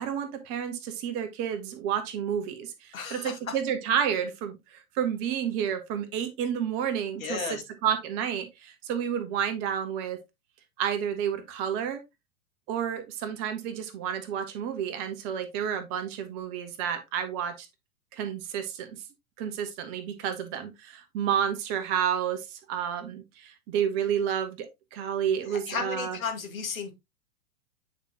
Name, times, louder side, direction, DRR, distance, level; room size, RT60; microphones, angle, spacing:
voice 1, 0.0-10.2 10.8-12.0 12.7-17.7 18.1-18.9 19.4-26.2, right 8 dB, 30° right, 1.4 m, -30 dB
voice 2, 2.9-3.3 7.2-7.6 25.5-26.9, left 5 dB, 65° left, 2.4 m, -34 dB
8.8 x 5.0 x 2.9 m
figure-of-eight pair, 105°, 45 cm